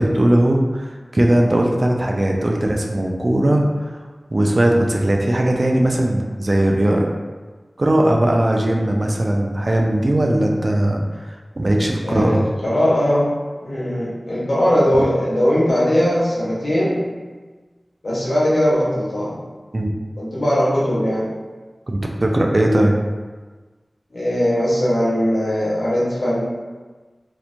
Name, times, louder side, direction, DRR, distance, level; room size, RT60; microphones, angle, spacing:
voice 1, 0.0-3.7 4.3-7.1 7.8-12.4 19.7-19.9 21.9-22.9, right 1 dB, 45° right, 1 dB, 0.3 m, -18 dB
voice 2, 12.0-13.3 13.6-17.1 18.0-19.4 20.2-21.3 24.1-26.4, equal, 85° left, -8 dB, 0.8 m, -19 dB
2.9 x 2.1 x 2.5 m, 1.3 s
wide cardioid pair, 70°, 0 cm